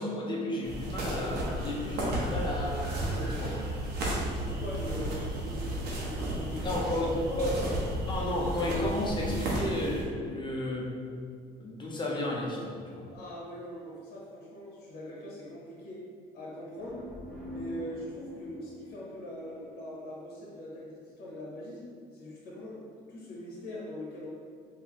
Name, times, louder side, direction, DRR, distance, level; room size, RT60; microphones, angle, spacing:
voice 1, 0.0-3.7 6.6-7.5 8.1-10.9 11.6-13.1, left 1 dB, 25° left, -3 dB, 0.7 m, -33 dB
sound 1, 0.6-10.0, right 1 dB, 75° right, 0.9 m, -33 dB
voice 2, 4.3-7.9 13.1-16.0 16.3-17.0 17.5-24.3, left 1 dB, 65° left, -4 dB, 0.9 m, -42 dB
sound 2, 16.7-20.4, left 1 dB, 5° right, 1.0 m, -45 dB
3.6 x 2.6 x 3.0 m, 2.2 s
cardioid pair, 110°, 17 cm